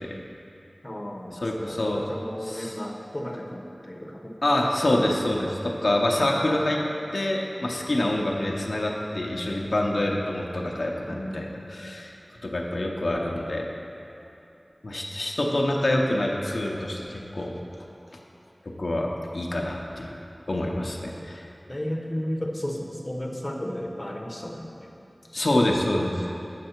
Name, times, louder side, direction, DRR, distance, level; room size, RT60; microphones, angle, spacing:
voice 1, 0.8-4.4 5.0-5.1 6.2-6.7 11.0-11.5 21.7-24.9, equal, 30° left, 0 dB, 0.8 m, -34 dB
voice 2, 1.4-2.0 2.4-2.8 4.4-6.8 7.1-12.1 12.4-13.7 14.8-17.5 18.8-20.1 20.5-21.5 25.3-26.3, left 1 dB, 80° left, -1 dB, 0.6 m, -26 dB
7.6 x 6.5 x 4.4 m, 2.9 s
wide cardioid pair, 55°, 0 cm